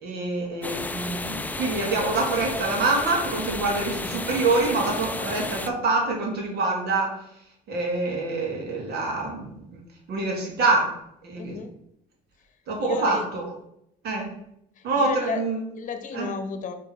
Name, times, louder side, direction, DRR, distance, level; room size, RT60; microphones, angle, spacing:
voice 1, 0.0-7.1 7.7-9.8 10.1-11.0 11.2-11.6 12.7-13.5 14.0-14.3 14.8-15.6 16.1-16.3, right 3 dB, 70° right, 0 dB, 2.0 m, -26 dB
sound 1, 0.6-5.7, left 2 dB, 10° left, 0.4 m, -32 dB
voice 2, 11.4-11.7 12.8-13.3 14.8-15.4 15.8-16.7, left 6 dB, 50° left, 8 dB, 0.9 m, -33 dB
5.9 x 3.7 x 4.3 m, 0.76 s
cardioid pair, 110°, 17 cm